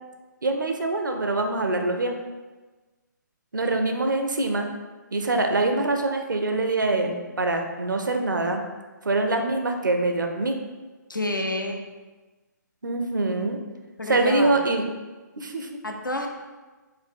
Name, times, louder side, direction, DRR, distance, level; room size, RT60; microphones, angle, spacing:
voice 1, 0.4-2.2 3.5-4.7 5.1-8.6 9.1-10.6 12.8-13.6 14.1-14.8 15.4-15.8, right 2 dB, 75° right, 4 dB, 0.5 m, -24 dB
voice 2, 11.1-11.8 14.0-14.5 15.8-16.3, left 1 dB, 85° left, 3 dB, 0.6 m, -29 dB
4.5 x 2.2 x 3.5 m, 1.3 s
figure-of-eight pair, 135°, 10 cm